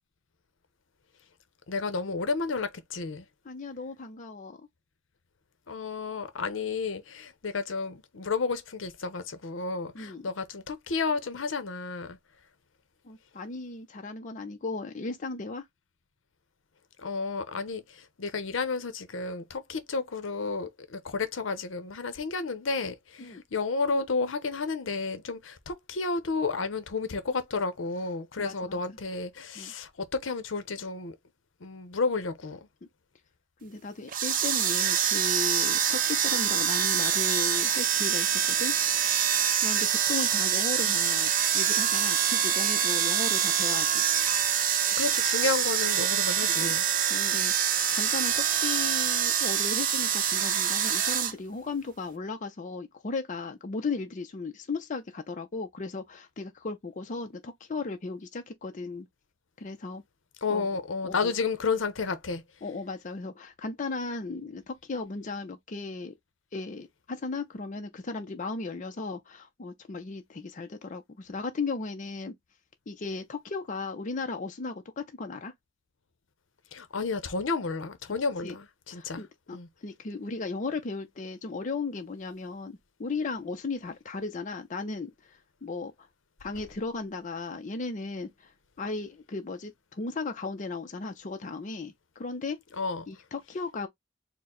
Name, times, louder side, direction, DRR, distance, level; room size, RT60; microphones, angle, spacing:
voice 1, 1.7-3.3 5.7-12.2 17.0-31.1 31.6-32.6 45.0-46.8 60.4-62.4 76.7-79.2 79.5-79.7 92.8-93.1, left 4 dB, 75° left, 0.7 m, -31 dB
voice 2, 3.4-4.7 9.9-10.3 13.0-15.6 23.2-23.4 28.4-29.0 29.6-29.7 33.6-38.8 39.6-44.0 46.4-47.5 47.9-59.1 59.6-60.0 60.5-60.7 61.0-61.3 62.6-66.1 66.5-72.4 72.9-75.5 78.4-78.6 78.9-85.9 86.4-88.5 88.8-92.6 93.1-93.9, left 3 dB, 40° left, 0.5 m, -36 dB
sound 1, 34.1-51.3, right 9 dB, 45° right, 0.6 m, -25 dB
4.4 x 2.1 x 3.7 m
head